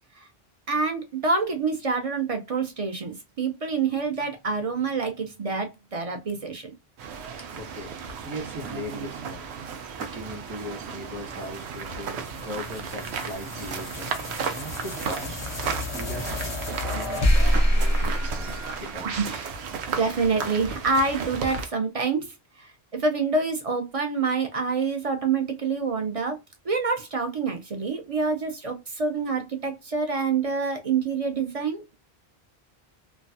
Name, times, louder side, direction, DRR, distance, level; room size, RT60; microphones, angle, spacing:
voice 1, 0.7-6.7 19.0-19.5 20.0-26.4 26.6-32.0, right 4 dB, 45° right, 0.5 m, -27 dB
sound 1, 7.0-21.6, right 6 dB, 90° right, 0.9 m, -34 dB
voice 2, 7.4-7.9 8.2-9.7 10.0-18.5 18.8-19.1, left 1 dB, 25° right, 1.1 m, -39 dB
sound 2, 10.8-19.4, equal, 30° left, 0.5 m, -28 dB
3.1 x 2.2 x 2.6 m
omnidirectional pair, 1.1 m